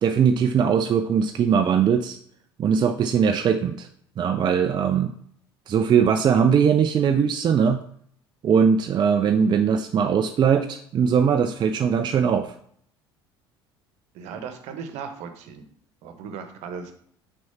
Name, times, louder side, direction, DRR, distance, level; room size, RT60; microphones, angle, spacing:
voice 1, 0.0-2.2 2.6-3.9 4.2-5.1 5.7-7.8 8.4-12.5, right 7 dB, 35° right, 8 dB, 0.5 m, -20 dB
voice 2, 14.1-15.6 16.0-16.9, right 6 dB, 60° right, 7 dB, 1.1 m, -37 dB
6.2 x 4.2 x 5.7 m, 0.64 s
figure-of-eight pair, 60°, 13 cm